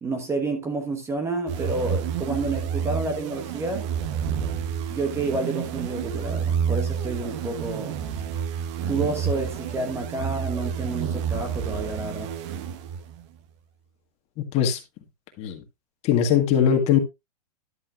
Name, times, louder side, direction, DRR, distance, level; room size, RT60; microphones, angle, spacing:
voice 1, 0.0-3.9 4.9-8.0 8.8-12.3, right 3 dB, 15° right, 1.1 m, -29 dB
sound 1, 1.5-13.2, right 8 dB, 45° right, 1.0 m, -29 dB
voice 2, 14.4-14.8 15.4-15.6 16.0-17.0, left 9 dB, 30° left, 1.6 m, -21 dB
11.0 x 7.5 x 2.5 m
hypercardioid pair, 145°, 20 cm